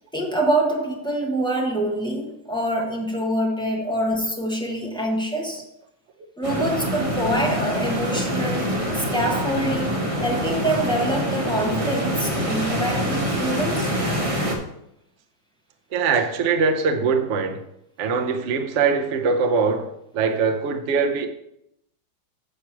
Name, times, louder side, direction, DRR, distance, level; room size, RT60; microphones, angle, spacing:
voice 1, 0.1-5.6 6.4-13.9, right 1 dB, 5° left, 0.5 m, -25 dB
sound 1, 6.4-14.5, equal, 25° right, 0.8 m, -25 dB
voice 2, 15.9-17.6 18.0-21.3, right 5 dB, 75° right, 0.6 m, -22 dB
8.0 x 4.6 x 6.0 m
omnidirectional pair, 2.4 m